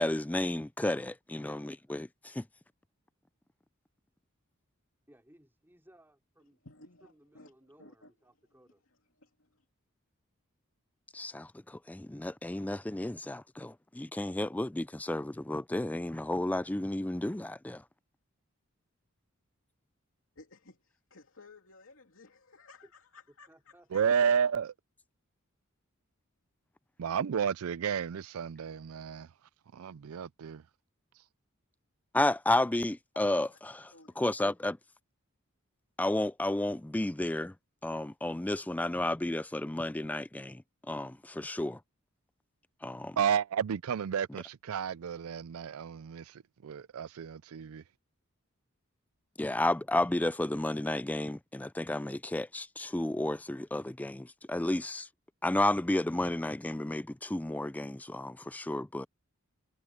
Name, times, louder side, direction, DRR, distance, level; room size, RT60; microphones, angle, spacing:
voice 1, 0.0-2.5 11.1-17.8 32.1-34.8 36.0-37.5 37.8-41.8 42.8-43.2 49.4-55.1 55.4-59.1, left 1 dB, 5° left, 0.3 m, -32 dB
voice 2, 5.1-6.6 7.0-8.8 22.8-22.9 23.5-24.3, right 1 dB, 10° right, 4.3 m, -61 dB
voice 3, 6.6-7.5 7.8-8.1 9.2-9.6 20.4-24.1 33.1-33.6 33.9-34.5, left 3 dB, 70° left, 2.8 m, -56 dB
voice 4, 23.9-24.7 27.0-29.3 29.7-30.6 43.2-47.8, right 7 dB, 85° right, 0.4 m, -31 dB
head